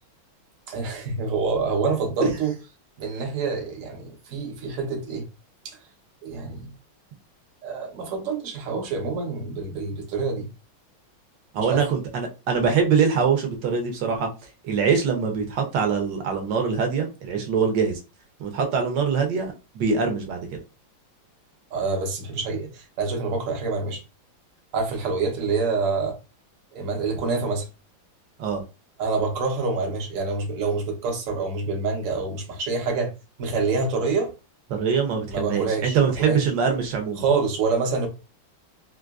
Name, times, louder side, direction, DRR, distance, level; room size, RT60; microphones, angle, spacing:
voice 1, 0.7-2.5 3.0-5.2 5.6-5.8 6.2-6.7 7.6-10.5 11.6-11.8 21.7-24.0 24.7-26.2 26.7-27.7 29.0-33.1 33.4-34.3 35.3-36.5 37.2-38.1, right 4 dB, 55° right, 1.0 m, -26 dB
voice 2, 11.5-14.3 14.6-18.0 18.4-20.6 28.4-28.6 34.7-37.2, right 6 dB, 70° right, 1.3 m, -23 dB
3.8 x 2.4 x 2.3 m
omnidirectional pair, 2.2 m